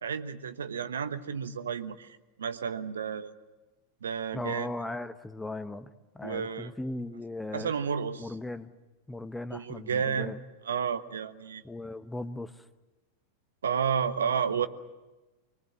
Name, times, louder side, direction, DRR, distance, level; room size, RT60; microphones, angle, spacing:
voice 1, 0.0-3.3 4.0-4.7 6.2-6.7 7.5-8.3 9.5-10.3 10.6-11.6 13.6-14.7, right 7 dB, 65° right, 11 dB, 1.2 m, -31 dB
voice 2, 4.3-7.7 8.2-8.7 9.1-10.4 11.6-12.7, left 2 dB, 5° left, 13 dB, 0.9 m, -38 dB
26.0 x 23.0 x 7.6 m, 1.1 s
figure-of-eight pair, 90°, 0 cm